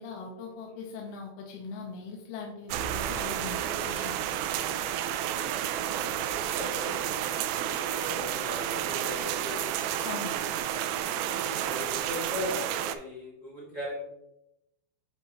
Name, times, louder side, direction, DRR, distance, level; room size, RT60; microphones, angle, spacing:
voice 1, 0.0-4.8 10.0-10.4, left 4 dB, 85° left, 0 dB, 2.8 m, -41 dB
sound 1, 2.7-13.0, right 10 dB, 85° right, 2.1 m, -31 dB
voice 2, 5.4-9.9 11.1-14.0, left 1 dB, 20° right, -6 dB, 1.3 m, -39 dB
8.2 x 4.8 x 3.0 m, 0.83 s
omnidirectional pair, 4.5 m